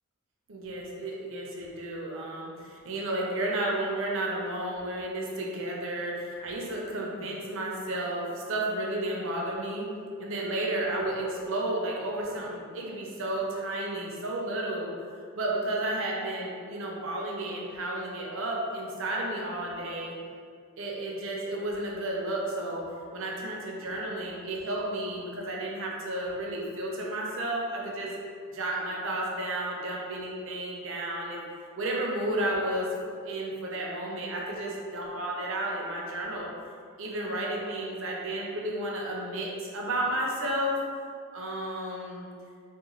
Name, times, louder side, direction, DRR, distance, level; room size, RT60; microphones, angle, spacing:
voice 1, 0.5-9.9 10.2-14.9 15.3-20.1 20.8-22.8 23.1-28.1 28.5-31.4 31.8-36.5 37.0-40.8 41.3-42.2, right 1 dB, 60° right, -2 dB, 0.6 m, -32 dB
3.0 x 2.2 x 3.8 m, 2.3 s
head